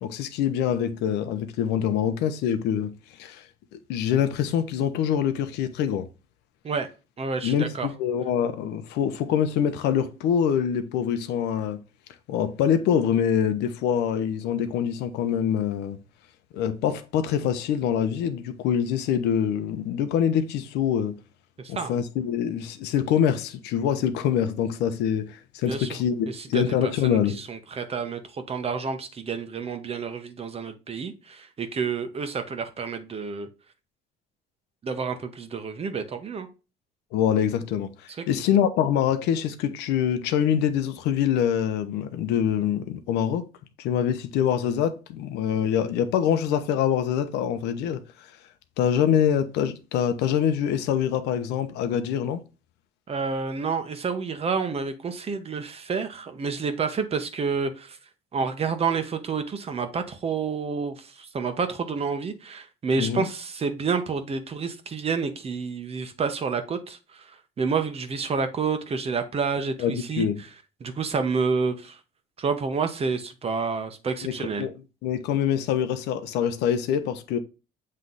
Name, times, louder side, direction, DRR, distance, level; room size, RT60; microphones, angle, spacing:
voice 1, 0.0-2.9 3.2-3.5 3.7-6.1 7.4-11.8 12.3-16.0 16.5-21.2 21.7-27.4 37.1-43.4 43.8-48.0 48.8-52.4 63.0-63.3 69.8-70.4 74.2-74.7 75.0-77.4, left 9 dB, 90° left, 0.8 m, -25 dB
voice 2, 7.2-7.9 21.6-21.9 25.6-26.0 26.3-33.5 34.8-36.5 38.2-38.3 53.1-58.0 58.3-67.3 67.6-70.3 70.8-72.0 72.4-74.7, right 5 dB, 35° right, 1.1 m, -29 dB
7.6 x 3.3 x 4.0 m
cardioid pair, 110°, 17 cm